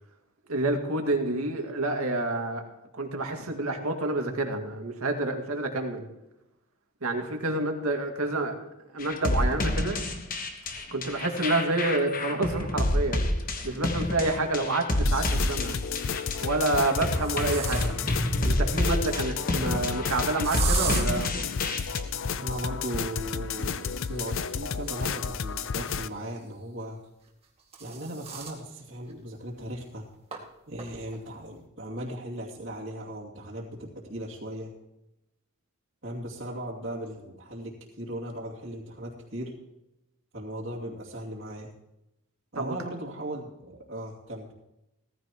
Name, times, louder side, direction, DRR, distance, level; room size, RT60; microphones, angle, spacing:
voice 1, 0.5-2.6 2.9-6.1 7.0-8.5 8.9-10.0 10.9-13.3 13.6-15.8 16.4-17.9 18.4-21.3 42.6-42.8, right 2 dB, 80° right, 3 dB, 2.2 m, -28 dB
sound 1, 9.0-22.0, left 1 dB, 40° left, 1.3 m, -28 dB
sound 2, 14.1-14.2 15.6-16.0 16.6-18.2 20.4-21.0 23.6-26.3 27.3-28.6 29.1-29.2 29.5-29.6 30.3-30.4 30.8-31.2, right 6 dB, 25° right, 2.2 m, -37 dB
sound 3, 15.1-26.1, left 6 dB, 65° left, 0.5 m, -32 dB
voice 2, 22.4-27.0 27.8-30.1 30.7-34.7 36.0-39.5 40.3-41.7 42.5-44.5, right 1 dB, 60° right, -5 dB, 2.5 m, -37 dB
18.0 x 14.5 x 3.0 m, 0.91 s
head